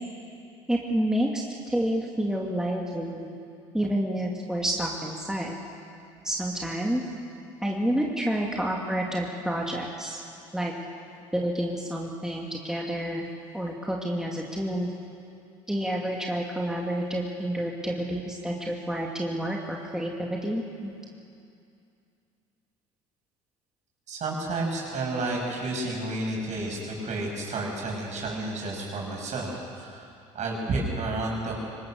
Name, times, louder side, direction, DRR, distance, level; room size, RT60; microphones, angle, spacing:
voice 1, 0.7-3.3 3.7-5.5 6.2-7.0 7.6-10.2 10.5-10.7 11.3-13.3 13.5-14.9 15.7-20.9, right 1 dB, 5° right, -1 dB, 2.5 m, -29 dB
voice 2, 24.1-31.5, right 2 dB, 50° right, -1 dB, 7.2 m, -31 dB
24.5 x 19.0 x 6.6 m, 2.5 s
hypercardioid pair, 70°, 15 cm